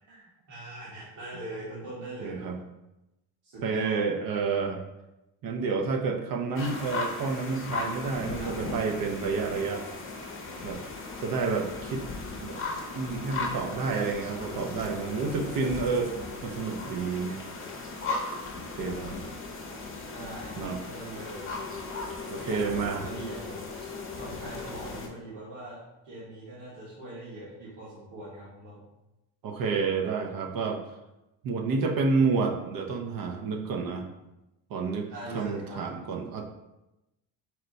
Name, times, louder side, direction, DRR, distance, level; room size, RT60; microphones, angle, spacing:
voice 1, 0.0-2.5 3.4-4.0 8.4-8.9 20.1-21.5 22.4-23.6 24.2-28.8 35.1-35.8, right 1 dB, 70° right, -8 dB, 1.4 m, -42 dB
voice 2, 2.2-2.6 3.6-4.8 5.4-9.9 10.6-10.8 11.2-12.0 12.4-12.6 12.9-16.1 16.4-17.4 18.8-19.1 20.6-20.8 22.3-23.1 29.4-30.8 31.4-34.1 34.7-36.4, right 4 dB, 50° right, 3 dB, 0.6 m, -29 dB
sound 1, 6.6-25.1, left 3 dB, 30° left, 0.7 m, -37 dB
4.3 x 2.2 x 3.9 m, 0.95 s
cardioid pair, 110°, 43 cm